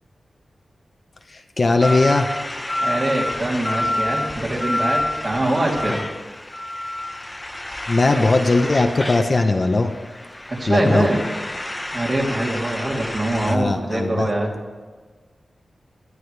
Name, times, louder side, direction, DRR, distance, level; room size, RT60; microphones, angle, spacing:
voice 1, 1.3-2.3 7.9-9.9 10.7-11.1 13.5-14.3, left 2 dB, 40° left, 4 dB, 1.0 m, -19 dB
sound 1, 1.8-13.6, left 1 dB, 15° left, 0.9 m, -29 dB
voice 2, 2.8-6.0 10.5-11.2 11.9-14.5, right 1 dB, 40° right, -3 dB, 3.2 m, -23 dB
19.0 x 12.5 x 3.4 m, 1.4 s
wide cardioid pair, 120°, 0 cm